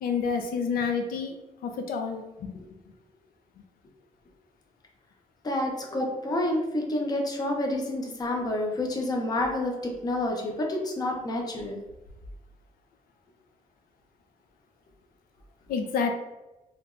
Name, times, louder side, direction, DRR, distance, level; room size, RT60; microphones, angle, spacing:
voice 1, 0.0-1.3 1.6-2.5 15.7-16.1, left 5 dB, 85° left, 4 dB, 0.4 m, -28 dB
voice 2, 5.4-11.8, left 1 dB, 25° left, 1 dB, 0.5 m, -29 dB
3.3 x 2.9 x 2.4 m, 1.0 s
wide cardioid pair, 175°, 15 cm